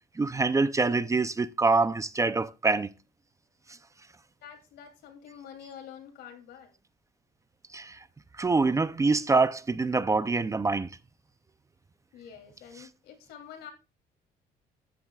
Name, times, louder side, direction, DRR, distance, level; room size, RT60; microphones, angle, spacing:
voice 1, 0.2-2.9 7.7-8.0 8.4-10.9, right 3 dB, 20° right, 0.5 m, -25 dB
voice 2, 4.4-6.8 12.1-13.7, left 8 dB, 80° left, 3.1 m, -47 dB
13.5 x 10.5 x 2.4 m
cardioid pair, 110°, 17 cm